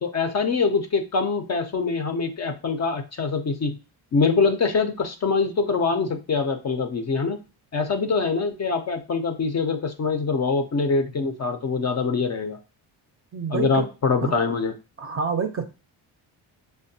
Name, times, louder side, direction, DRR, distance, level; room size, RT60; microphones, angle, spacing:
voice 1, 0.0-3.8 4.1-7.4 7.7-12.6 13.5-14.7, left 4 dB, 35° left, 6 dB, 0.4 m, -24 dB
voice 2, 13.3-13.9 14.2-14.3 15.0-15.6, right 5 dB, 30° right, 6 dB, 0.5 m, -27 dB
5.0 x 2.1 x 2.7 m, 0.31 s
cardioid pair, 85°, 48 cm